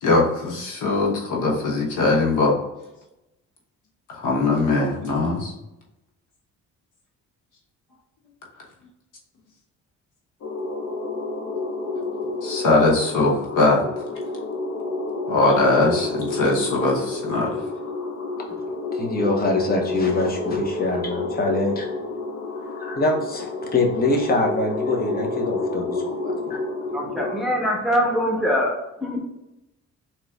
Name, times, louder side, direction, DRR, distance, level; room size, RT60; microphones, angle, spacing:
voice 1, 0.0-2.6 4.1-5.5 12.4-13.8 15.3-17.5, left 2 dB, 85° left, -1 dB, 1.2 m, -21 dB
sound 1, 10.4-27.4, left 2 dB, 60° left, 0.8 m, -29 dB
voice 2, 19.0-21.9 22.8-26.6, left 2 dB, 30° left, 2 dB, 1.0 m, -24 dB
voice 3, 26.9-29.2, equal, ahead, -1 dB, 1.2 m, -23 dB
3.7 x 3.0 x 3.5 m, 0.92 s
cardioid pair, 90°, 30 cm